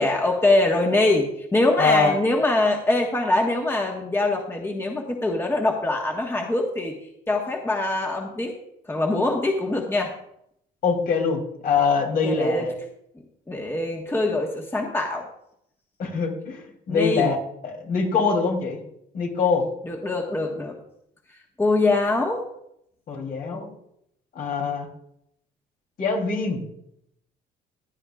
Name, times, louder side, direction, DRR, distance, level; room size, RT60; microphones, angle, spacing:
voice 1, 0.0-6.9 7.3-8.5 8.9-10.1 12.2-12.6 13.5-15.3 16.9-17.3 19.8-20.7 21.6-22.4, left 2 dB, 15° left, 1 dB, 1.5 m, -23 dB
voice 2, 1.8-2.2 10.8-12.7 16.0-17.4 17.6-18.8 19.1-19.7 23.1-23.7 24.4-24.9 26.0-26.6, left 5 dB, 60° left, 1 dB, 3.5 m, -23 dB
16.0 x 10.5 x 2.5 m, 0.75 s
cardioid pair, 110°, 17 cm